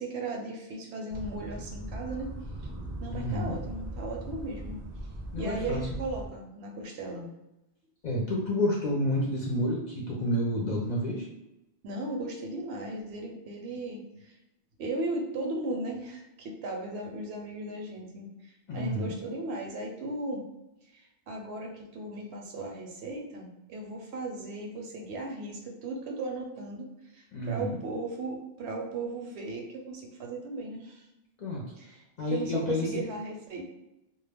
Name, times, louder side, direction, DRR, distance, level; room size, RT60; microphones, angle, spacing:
voice 1, 0.0-2.3 3.0-4.8 5.4-7.3 11.8-14.3 14.8-20.4 20.9-26.9 27.1-31.1 31.8-33.7, right 2 dB, 80° right, 1 dB, 0.8 m, -36 dB
sound 1, 1.1-6.3, right 1 dB, 40° right, 0.5 m, -39 dB
voice 2, 3.1-3.6 5.3-5.8 8.0-11.2 18.7-19.2 27.3-27.8 31.4-31.6 32.2-33.0, left 1 dB, 50° left, -3 dB, 0.6 m, -29 dB
2.2 x 2.1 x 3.3 m, 0.93 s
omnidirectional pair, 1.1 m